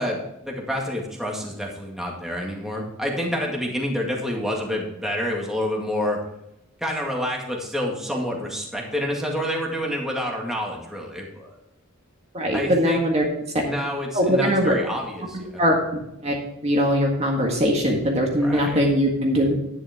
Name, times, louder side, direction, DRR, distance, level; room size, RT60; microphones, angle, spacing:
voice 1, 0.0-6.2 6.8-11.6 12.5-13.0 13.6-15.5 18.4-18.8, equal, ahead, -1 dB, 2.1 m, -28 dB
voice 2, 12.3-13.2 13.5-13.6 14.1-14.7 15.3-15.8 16.2-16.3 16.6-19.6, equal, 30° right, 0 dB, 1.8 m, -21 dB
10.5 x 10.0 x 3.6 m, 0.85 s
head